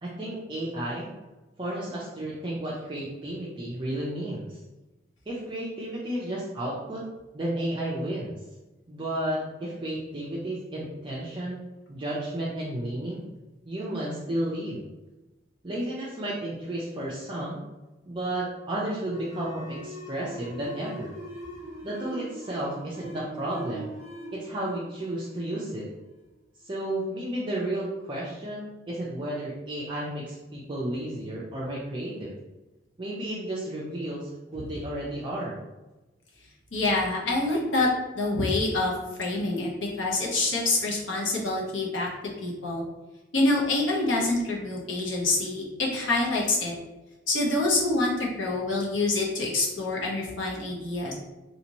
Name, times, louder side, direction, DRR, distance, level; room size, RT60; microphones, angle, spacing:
voice 1, 0.0-1.1 1.6-4.6 5.3-7.0 7.3-8.4 8.9-11.6 11.9-13.2 13.7-14.8 15.6-17.6 18.1-21.1 21.8-23.9 24.3-25.9 26.6-32.3 33.0-35.6, right 1 dB, 25° right, -7 dB, 0.5 m, -32 dB
sound 1, 19.0-26.2, equal, 50° left, 1.2 m, -42 dB
voice 2, 36.7-37.9 38.1-38.9 39.2-42.1 42.4-42.8 43.3-46.7 47.3-51.1, left 2 dB, 85° left, -3 dB, 0.9 m, -26 dB
3.3 x 2.7 x 2.9 m, 1.1 s
head